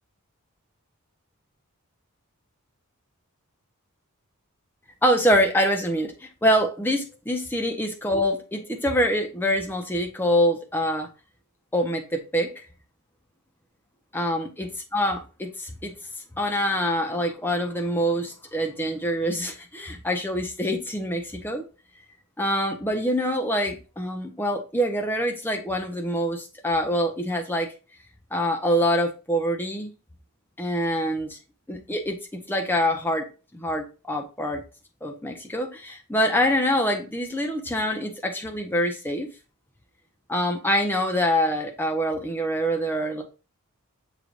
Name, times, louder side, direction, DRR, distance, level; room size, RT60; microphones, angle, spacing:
voice 1, 5.0-11.1 11.7-12.6 14.1-14.5 14.9-15.9 16.4-21.6 22.4-27.7 28.3-29.9 30.6-31.4 31.7-32.2 32.5-33.2 33.5-34.6 35.0-39.3 40.3-43.2, equal, 10° left, 2 dB, 0.7 m, -25 dB
6.5 x 3.3 x 2.5 m, 0.32 s
head